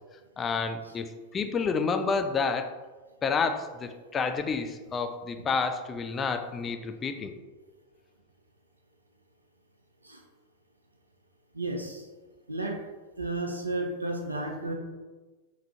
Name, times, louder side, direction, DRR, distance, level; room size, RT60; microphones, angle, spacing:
voice 1, 0.4-1.1 1.3-2.7 3.2-7.3, left 5 dB, 20° left, 7 dB, 0.3 m, -29 dB
voice 2, 11.5-12.1 12.5-12.8 13.2-14.7, right 2 dB, 80° right, 3 dB, 0.5 m, -32 dB
3.5 x 3.5 x 2.7 m, 1.2 s
figure-of-eight pair, 90°, 0 cm